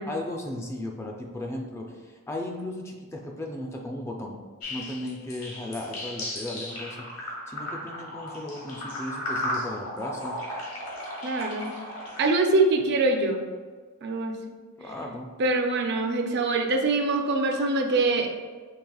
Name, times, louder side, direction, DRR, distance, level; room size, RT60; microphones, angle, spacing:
voice 1, 0.1-4.4 4.7-10.4 14.8-15.3, left 1 dB, 10° left, 0 dB, 0.3 m, -36 dB
sound 1, 4.6-12.3, left 1 dB, 75° left, 1.2 m, -35 dB
voice 2, 11.2-11.7 12.2-13.4 14.0-14.3 15.4-18.3, right 3 dB, 50° right, 3 dB, 0.4 m, -24 dB
4.8 x 3.2 x 2.3 m, 1.5 s
head